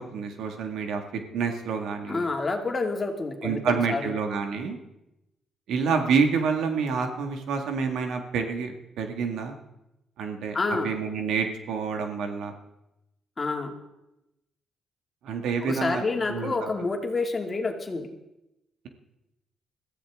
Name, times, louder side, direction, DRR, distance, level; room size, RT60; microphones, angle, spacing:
voice 1, 0.0-2.2 3.4-4.8 5.7-9.6 10.2-12.5 15.2-16.0 16.3-16.7, right 5 dB, 80° right, 5 dB, 2.0 m, -28 dB
voice 2, 2.1-4.2 10.5-10.9 13.4-13.7 15.6-18.1, left 3 dB, 30° left, 3 dB, 2.5 m, -28 dB
21.5 x 14.5 x 3.7 m, 0.90 s
cardioid pair, 90°, 0 cm